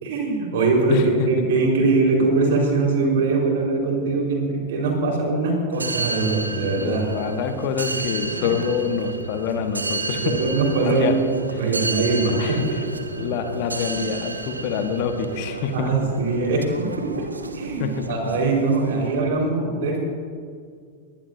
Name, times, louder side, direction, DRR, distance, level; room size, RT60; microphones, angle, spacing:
voice 1, 0.0-7.3 7.9-8.0 10.3-11.2 11.5-12.6 15.7-16.7 17.2-17.3 17.5-20.0, right 3 dB, 55° right, 0 dB, 4.6 m, -22 dB
voice 2, 0.9-1.3 6.8-10.4 10.8-11.1 11.6-11.7 12.4-12.8 13.2-15.9 17.8-18.1, left 6 dB, 45° left, 7 dB, 1.4 m, -26 dB
sound 1, 5.7-19.2, right 3 dB, 80° right, 1.0 m, -32 dB
22.5 x 19.0 x 2.8 m, 2.1 s
figure-of-eight pair, 90°, 0 cm